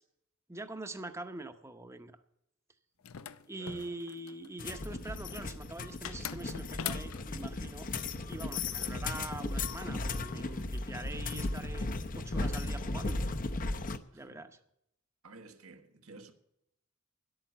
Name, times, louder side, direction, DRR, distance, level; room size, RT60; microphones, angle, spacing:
voice 1, 0.5-2.1 3.5-7.9 8.3-13.2 14.1-14.5, right 2 dB, 15° right, 0.7 m, -44 dB
sound 1, 3.0-4.5 6.1-7.5, left 8 dB, 85° left, 0.6 m, -41 dB
voice 2, 3.5-3.9 14.1-14.4 15.2-16.3, right 3 dB, 90° right, 1.5 m, -52 dB
sound 2, 4.6-14.0, left 2 dB, 40° left, 0.7 m, -36 dB
11.0 x 8.8 x 7.8 m
head